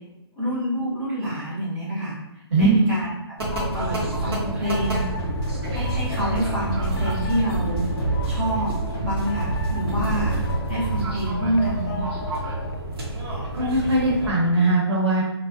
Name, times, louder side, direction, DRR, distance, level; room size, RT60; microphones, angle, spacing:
voice 1, 0.4-3.3 3.7-5.1 5.7-7.8 8.2-8.7 9.0-10.4 10.7-12.1, right 1 dB, 10° right, -13 dB, 0.4 m, -27 dB
sound 1, 3.4-14.3, right 2 dB, 60° right, 0.8 m, -28 dB
sound 2, 3.5-12.8, left 3 dB, 60° left, 0.4 m, -37 dB
sound 3, 4.7-10.3, equal, 20° left, 0.9 m, -32 dB
voice 2, 13.5-15.2, right 1 dB, 85° right, -4 dB, 1.0 m, -20 dB
2.4 x 2.1 x 2.4 m, 0.91 s
hypercardioid pair, 165°, 14 cm